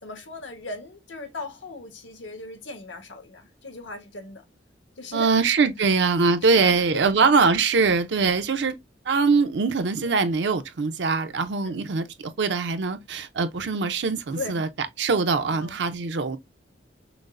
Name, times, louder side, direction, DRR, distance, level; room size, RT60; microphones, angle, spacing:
voice 1, 0.0-4.4 5.0-5.3 5.8-5.9 6.6-7.3 10.0-10.2 11.6-11.8 14.3-14.6 15.4-15.8, left 2 dB, 80° left, 1.0 m, -38 dB
voice 2, 5.1-8.7 9.1-16.4, right 4 dB, 65° right, 0.5 m, -22 dB
6.0 x 2.0 x 2.4 m
head